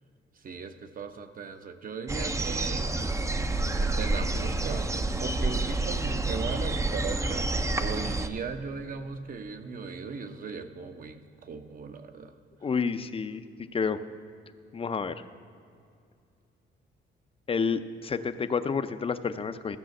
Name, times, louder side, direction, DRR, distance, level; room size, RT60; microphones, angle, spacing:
voice 1, 0.4-2.9 3.8-4.9 5.2-12.3, right 5 dB, 45° right, 8 dB, 0.9 m, -38 dB
sound 1, 2.1-8.3, right 2 dB, 15° right, 0.6 m, -28 dB
voice 2, 12.6-13.4 13.7-14.0 14.7-15.1 17.5-19.8, left 5 dB, 30° left, 11 dB, 0.6 m, -29 dB
14.0 x 5.7 x 7.7 m, 2.4 s
cardioid pair, 90°, 20 cm